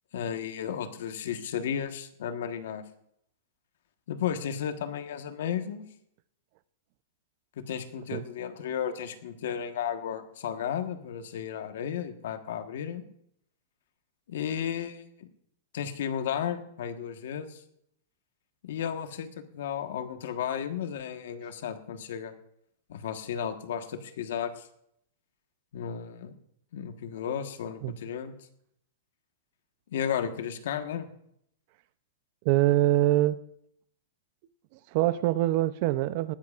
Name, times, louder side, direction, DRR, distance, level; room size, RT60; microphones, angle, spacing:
voice 1, 0.1-2.8 4.1-5.8 7.6-13.0 14.3-15.3 15.7-17.6 18.6-22.3 22.9-24.7 25.7-26.3 26.7-28.3 29.9-31.1, left 8 dB, 70° left, 8 dB, 1.4 m, -34 dB
voice 2, 32.4-33.4 34.9-36.3, right 15 dB, 45° right, 16 dB, 0.6 m, -24 dB
19.5 x 13.0 x 2.5 m, 0.71 s
hypercardioid pair, 140°, 0 cm